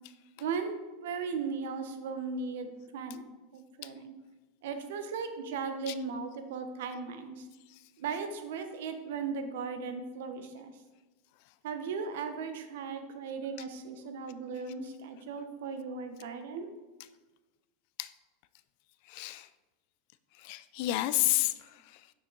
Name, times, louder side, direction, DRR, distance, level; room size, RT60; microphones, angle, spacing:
voice 1, 0.4-4.1 4.6-7.5 8.0-10.7 11.6-16.7, right 5 dB, 75° right, 8 dB, 0.8 m, -37 dB
voice 2, 19.0-19.5 20.3-22.1, left 16 dB, 50° left, 15 dB, 0.3 m, -31 dB
6.3 x 5.8 x 3.9 m, 1.1 s
supercardioid pair, 165°, 0 cm